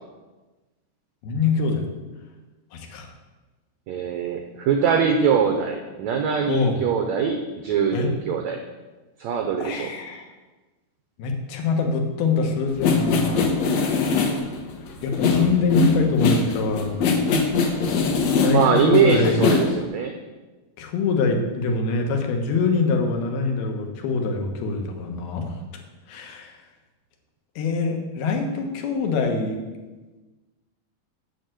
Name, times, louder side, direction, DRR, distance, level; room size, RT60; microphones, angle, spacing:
voice 1, 1.2-1.8 2.7-3.1 6.5-6.8 7.9-8.1 9.6-10.3 11.2-13.4 15.0-16.9 18.4-19.5 20.8-25.5 26.1-26.5 27.6-29.6, left 4 dB, 90° left, 3 dB, 3.3 m, -24 dB
voice 2, 3.9-8.6 9.2-9.9 18.5-20.1, right 6 dB, 90° right, 4 dB, 1.5 m, -22 dB
sound 1, 12.7-19.8, left 4 dB, 65° left, 1.8 m, -22 dB
8.3 x 6.8 x 7.6 m, 1.2 s
omnidirectional pair, 4.3 m